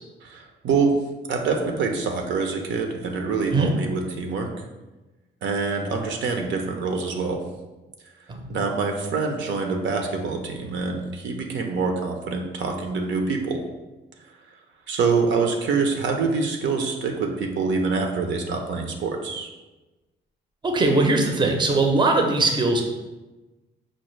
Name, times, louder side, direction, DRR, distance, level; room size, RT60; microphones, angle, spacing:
voice 1, 0.2-1.0 1.3-4.5 5.4-7.4 8.5-13.6 14.9-19.5, right 4 dB, 70° right, 3 dB, 0.6 m, -25 dB
voice 2, 20.6-22.8, right 2 dB, 20° right, 2 dB, 0.5 m, -20 dB
5.1 x 2.0 x 3.1 m, 1.1 s
cardioid pair, 90°, 20 cm